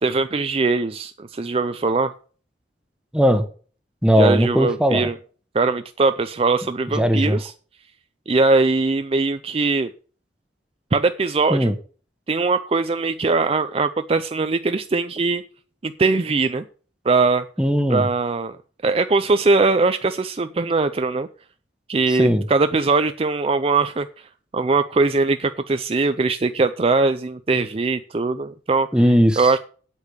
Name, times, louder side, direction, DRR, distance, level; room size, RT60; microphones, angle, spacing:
voice 1, 0.0-2.1 4.2-5.2 5.5-7.5 8.3-9.9 10.9-11.7 12.3-15.4 15.8-16.6 17.0-17.4 17.9-18.6 18.8-21.3 21.9-24.3 24.5-28.9 29.4-29.6, right 3 dB, 35° right, 10 dB, 0.5 m, -21 dB
voice 2, 3.1-3.4 4.0-5.1 6.9-7.4 11.5-11.7 17.6-18.1 22.1-22.4 28.9-29.5, equal, 5° right, 7 dB, 1.2 m, -18 dB
8.5 x 8.3 x 6.7 m, 0.41 s
head